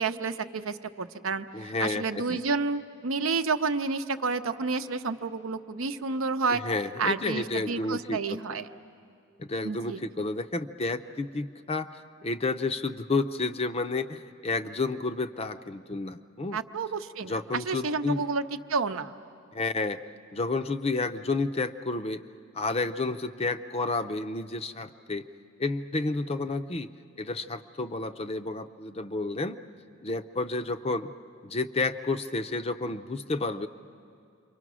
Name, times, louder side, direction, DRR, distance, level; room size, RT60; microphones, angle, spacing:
voice 1, 0.0-6.6 7.0-8.7 9.6-10.0 16.5-18.4 18.7-19.1, right 4 dB, 80° right, 9 dB, 0.7 m, -30 dB
voice 2, 1.5-2.4 6.5-8.4 9.4-16.6 17.2-18.3 19.5-20.0 20.3-22.2 22.5-25.3 25.6-26.9 27.2-29.6 30.0-31.1 31.4-33.7, left 3 dB, 30° left, 11 dB, 0.5 m, -31 dB
28.0 x 24.0 x 6.2 m, 2.4 s
head